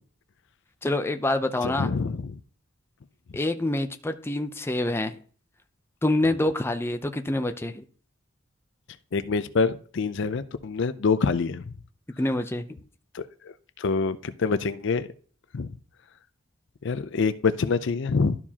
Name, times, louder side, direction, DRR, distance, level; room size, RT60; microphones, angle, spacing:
voice 1, 0.8-1.9 3.3-5.1 6.0-7.8 12.2-12.6, left 1 dB, 10° left, 0.5 m, -26 dB
voice 2, 1.6-2.4 9.1-11.6 13.1-15.1 15.5-15.7 16.8-18.4, left 4 dB, 65° left, 0.5 m, -26 dB
12.5 x 4.7 x 2.8 m
head